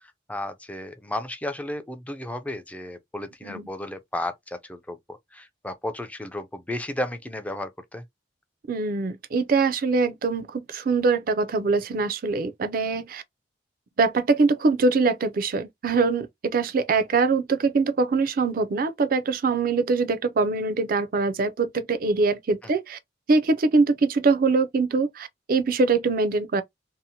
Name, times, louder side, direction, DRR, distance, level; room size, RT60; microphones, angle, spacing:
voice 1, 0.3-8.0 22.6-22.7, left 1 dB, 10° left, 0.4 m, -33 dB
voice 2, 8.7-13.2 14.0-23.0 23.3-26.6, right 4 dB, 55° right, 0.4 m, -23 dB
2.7 x 2.1 x 2.7 m
head